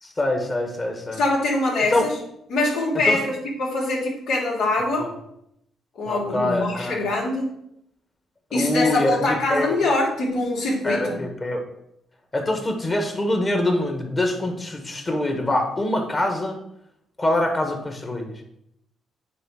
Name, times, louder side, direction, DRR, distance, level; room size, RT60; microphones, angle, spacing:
voice 1, 0.0-1.2 1.9-2.0 3.1-3.2 5.0-5.1 6.1-7.0 8.5-9.7 10.8-11.6 12.3-16.6 17.2-18.4, left 1 dB, 30° left, 3 dB, 1.6 m, -24 dB
voice 2, 1.2-2.1 2.5-5.1 6.0-7.5 8.5-11.2, left 2 dB, 80° left, -5 dB, 3.1 m, -23 dB
9.4 x 3.4 x 4.9 m, 0.77 s
cardioid pair, 90°, 0 cm